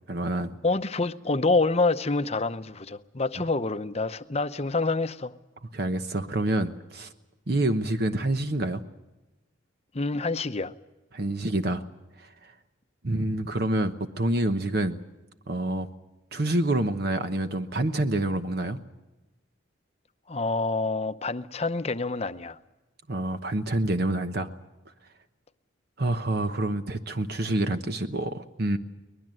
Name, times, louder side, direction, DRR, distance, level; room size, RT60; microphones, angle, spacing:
voice 1, 0.1-0.5 5.7-7.1 7.5-8.8 11.1-11.8 12.2-12.5 13.0-15.0 15.5-15.9 16.3-18.8 23.1-24.5 26.0-28.8, right 1 dB, 55° right, 1.0 m, -27 dB
voice 2, 0.6-5.3 9.9-10.7 20.3-22.6, left 3 dB, 35° left, 0.8 m, -27 dB
23.0 x 20.5 x 7.8 m
head